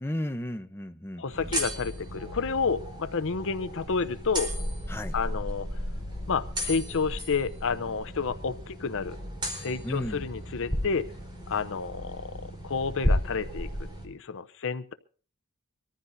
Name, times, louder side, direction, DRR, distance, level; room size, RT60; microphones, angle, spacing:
voice 1, 0.0-1.5 4.9-5.1 9.8-10.3, left 1 dB, 10° left, 0.8 m, -34 dB
voice 2, 1.2-4.5 5.1-5.7 6.3-9.2 9.6-11.1 11.5-13.7 14.0-14.9, left 5 dB, 60° left, 0.7 m, -30 dB
sound 1, 1.3-14.1, equal, 20° right, 3.9 m, -34 dB
24.0 x 14.5 x 2.7 m
head